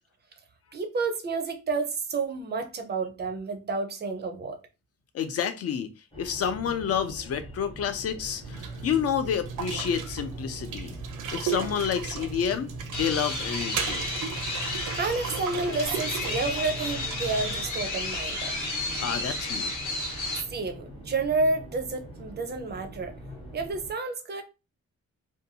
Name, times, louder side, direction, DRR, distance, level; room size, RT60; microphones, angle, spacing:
voice 1, 0.7-4.6 15.0-18.5 20.5-23.1 23.5-24.4, right 3 dB, 35° right, 0.4 m, -30 dB
voice 2, 5.1-10.9 11.3-14.1 19.0-19.7, left 8 dB, 50° left, 0.4 m, -29 dB
sound 1, 6.1-23.9, right 1 dB, 15° left, 0.8 m, -43 dB
sound 2, 8.4-17.7, right 7 dB, 80° right, 0.5 m, -36 dB
sound 3, 12.9-20.4, left 2 dB, 75° left, 0.9 m, -32 dB
2.6 x 2.2 x 2.7 m
wide cardioid pair, 175°, 30 cm